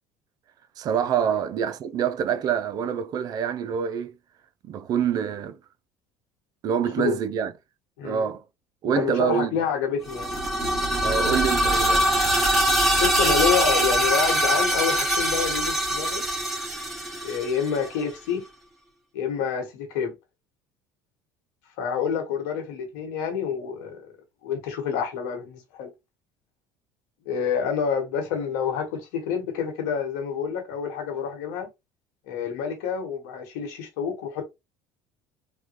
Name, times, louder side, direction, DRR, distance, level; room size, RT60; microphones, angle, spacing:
voice 1, 0.8-4.1 4.6-5.6 6.6-7.5 8.0-8.4 8.8-9.6 11.0-12.1, right 8 dB, 45° right, 0.4 m, -26 dB
voice 2, 8.9-10.3 13.0-16.2 17.2-18.4 19.1-20.1 21.8-24.0 24.4-25.9 27.2-31.7 32.3-34.5, left 7 dB, 85° left, 1.3 m, -28 dB
sound 1, 10.0-17.9, right 1 dB, ahead, 1.2 m, -23 dB
3.5 x 2.2 x 3.0 m
supercardioid pair, 110°, 9 cm